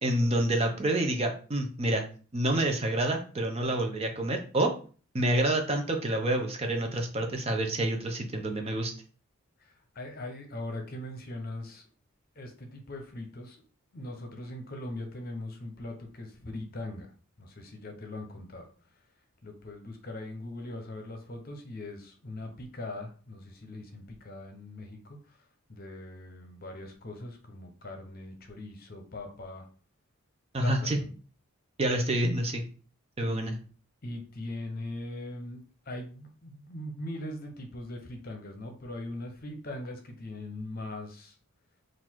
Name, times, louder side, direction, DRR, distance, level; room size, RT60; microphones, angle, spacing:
voice 1, 0.0-2.0 2.3-4.7 5.1-8.9 30.5-31.0 31.8-32.6 33.2-33.6, right 1 dB, 25° right, 4 dB, 0.6 m, -28 dB
voice 2, 9.6-11.9 12.3-13.6 13.9-17.1 17.4-18.7 19.4-25.4 25.7-29.7 30.6-31.1 33.2-33.6 34.0-41.4, left 1 dB, 40° left, 4 dB, 0.8 m, -40 dB
3.9 x 2.5 x 4.4 m, 0.39 s
head